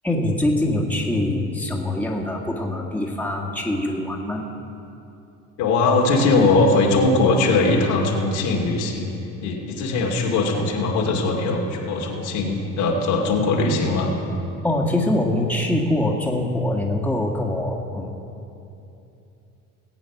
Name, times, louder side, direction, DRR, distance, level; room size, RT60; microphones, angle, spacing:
voice 1, 0.0-4.4 14.6-18.2, left 1 dB, 5° left, -1 dB, 1.9 m, -23 dB
voice 2, 5.6-9.1 9.4-14.1, left 3 dB, 65° left, -1 dB, 2.5 m, -20 dB
19.0 x 8.6 x 6.0 m, 2.8 s
hypercardioid pair, 65°, 43 cm